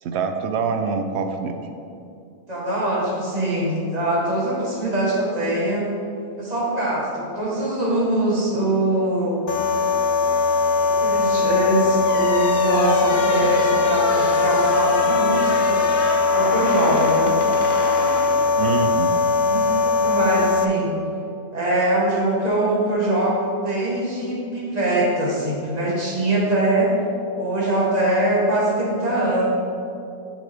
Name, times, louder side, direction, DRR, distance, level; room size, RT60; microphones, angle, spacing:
voice 1, 0.0-1.7 18.6-19.2, right 5 dB, 70° right, 6 dB, 0.6 m, -25 dB
voice 2, 2.5-5.9 6.4-9.4 10.9-15.8 16.3-17.4 19.4-20.9 21.5-27.0 27.4-29.5, right 1 dB, 30° right, -4 dB, 1.4 m, -22 dB
sound 1, 9.5-20.6, left 3 dB, 80° left, 0.4 m, -20 dB
sound 2, 12.0-19.0, left 2 dB, 45° left, 0.8 m, -29 dB
7.8 x 6.5 x 3.4 m, 2.6 s
omnidirectional pair, 1.6 m